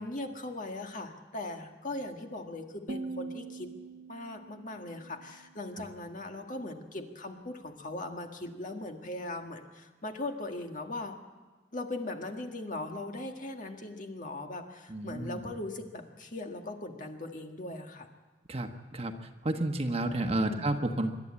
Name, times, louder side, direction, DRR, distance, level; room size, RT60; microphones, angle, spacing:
voice 1, 0.0-3.7 4.1-11.2 11.7-18.1 20.4-20.6, left 2 dB, 45° left, 4 dB, 1.8 m, -39 dB
sound 1, 2.9-5.9, right 3 dB, 60° right, 1.0 m, -43 dB
voice 2, 14.9-15.4 18.5-19.2 19.4-21.2, right 1 dB, 35° right, 6 dB, 1.3 m, -31 dB
25.5 x 12.0 x 8.7 m, 1.4 s
head